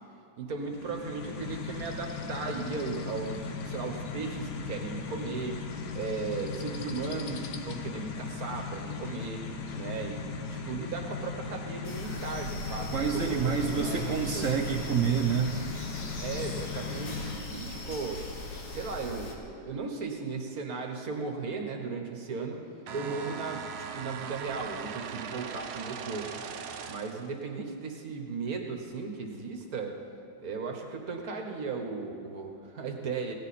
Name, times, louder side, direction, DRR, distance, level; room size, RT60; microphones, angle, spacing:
voice 1, 0.4-5.6 5.9-9.4 9.7-14.5 16.2-18.2 18.7-26.3 26.9-30.0 30.4-33.3, right 4 dB, 50° right, 3 dB, 1.4 m, -36 dB
sound 1, 0.6-17.4, left 4 dB, 65° left, 1.2 m, -38 dB
sound 2, 11.8-19.3, left 2 dB, 45° left, 1.6 m, -40 dB
voice 2, 12.9-15.6, right 7 dB, 65° right, 3 dB, 0.8 m, -28 dB
sound 3, 22.9-27.3, right 6 dB, 85° right, 1.6 m, -40 dB
16.5 x 10.5 x 4.2 m, 2.8 s
omnidirectional pair, 2.3 m